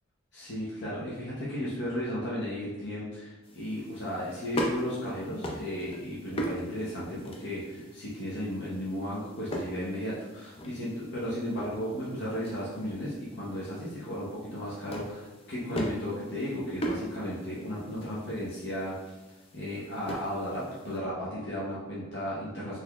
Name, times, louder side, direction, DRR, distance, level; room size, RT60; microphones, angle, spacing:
voice 1, 0.3-19.0 19.5-22.8, equal, 55° left, -7 dB, 0.7 m, -35 dB
sound 1, 3.4-21.0, equal, 25° left, 0.4 m, -40 dB
3.9 x 3.0 x 2.3 m, 1.1 s
head